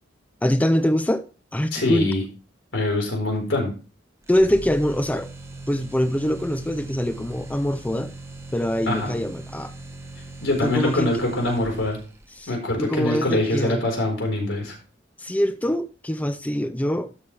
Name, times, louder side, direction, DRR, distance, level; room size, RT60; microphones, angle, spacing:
voice 1, 0.4-1.3 1.5-2.1 4.3-5.3 5.7-8.1 8.5-9.7 10.6-11.1 12.4-12.5 12.8-13.8 15.2-17.1, equal, 10° left, 0.4 m, -24 dB
voice 2, 1.7-2.2 2.7-3.7 8.9-9.2 10.4-12.0 12.5-14.8, left 2 dB, 85° left, 4.2 m, -24 dB
sound 1, 4.3-12.3, right 1 dB, 15° right, 1.0 m, -39 dB
12.5 x 6.6 x 3.3 m
head